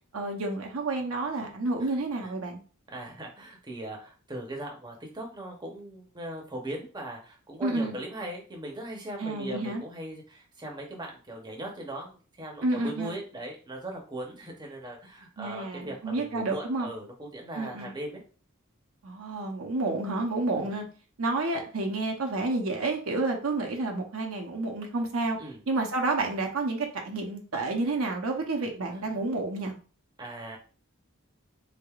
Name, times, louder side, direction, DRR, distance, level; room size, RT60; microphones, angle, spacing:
voice 1, 0.1-2.6 7.6-8.0 9.2-9.8 12.6-13.1 15.4-16.9 17.6-17.9 19.0-20.8 21.2-25.4 25.7-29.8, right 2 dB, 80° right, 2 dB, 0.8 m, -30 dB
voice 2, 2.9-18.2 20.6-20.7 25.4-25.6 28.9-29.2 30.2-30.6, right 1 dB, 20° right, 0 dB, 0.8 m, -39 dB
3.6 x 3.5 x 2.3 m, 0.37 s
head